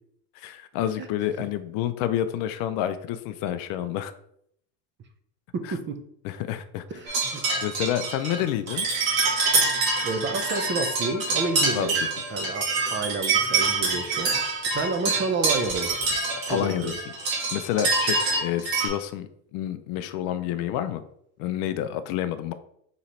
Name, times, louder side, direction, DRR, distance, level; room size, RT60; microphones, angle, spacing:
voice 1, 0.4-4.1 5.6-5.7 6.2-6.8 7.6-8.9 11.7-11.9 16.5-16.9 17.5-21.0 21.4-22.5, left 11 dB, 55° left, 11 dB, 0.5 m, -29 dB
voice 2, 5.5-6.0 6.9-7.4 8.4-8.5 10.0-14.3 14.7-15.9 16.5-17.0, right 3 dB, 30° right, 7 dB, 0.6 m, -30 dB
sound 1, 7.1-18.9, right 3 dB, 90° right, 1.8 m, -26 dB
3.9 x 3.0 x 4.2 m, 0.70 s
supercardioid pair, 105°, 40 cm